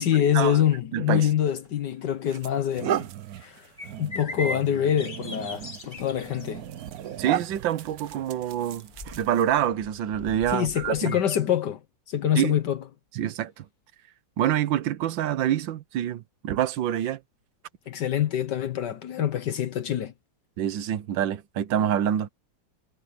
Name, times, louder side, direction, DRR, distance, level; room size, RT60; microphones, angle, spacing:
voice 1, 0.0-3.1 3.4-3.7 4.0-6.6 10.5-11.8 12.1-12.8 17.9-20.1, left 10 dB, 65° left, 1.5 m, -25 dB
voice 2, 0.9-1.3 7.2-11.2 12.4-12.5 13.2-13.7 14.4-17.2 20.6-22.3, right 10 dB, 80° right, 1.7 m, -26 dB
sound 1, 1.5-1.7 2.2-9.6, right 10 dB, 65° right, 1.0 m, -35 dB
sound 2, 3.8-11.4, left 1 dB, 25° left, 1.6 m, -41 dB
omnidirectional pair, 2.1 m